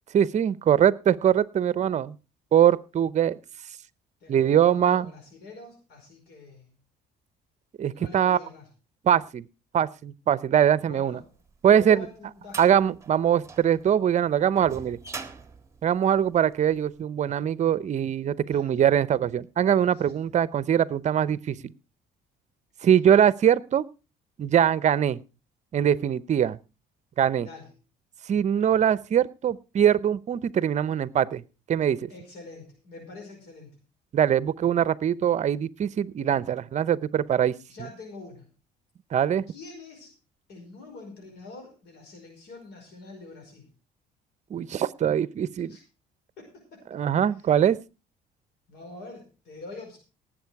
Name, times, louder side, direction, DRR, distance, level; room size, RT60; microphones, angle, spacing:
voice 1, 0.1-2.1 2.5-3.4 4.3-5.1 7.8-8.4 9.0-9.5 9.7-11.2 11.6-12.1 12.6-15.0 15.8-21.7 22.8-23.8 24.4-25.2 25.7-26.6 27.2-27.5 28.3-31.4 31.7-32.1 34.1-37.5 39.1-39.4 44.5-45.8 46.9-47.8, right 9 dB, 45° right, 18 dB, 0.7 m, -22 dB
voice 2, 4.2-6.7 7.9-8.7 10.8-11.3 11.8-12.7 18.5-18.8 19.9-20.0 27.4-27.7 32.1-33.8 37.7-38.5 39.5-40.1 40.5-43.7 45.7-45.8 46.4-46.8 47.2-47.5 48.7-50.0, left 3 dB, 75° left, 1 dB, 5.2 m, -45 dB
sound 1, 11.5-16.8, right 4 dB, 15° right, 1.6 m, -43 dB
18.5 x 7.8 x 4.7 m, 0.32 s
cardioid pair, 110°, 17 cm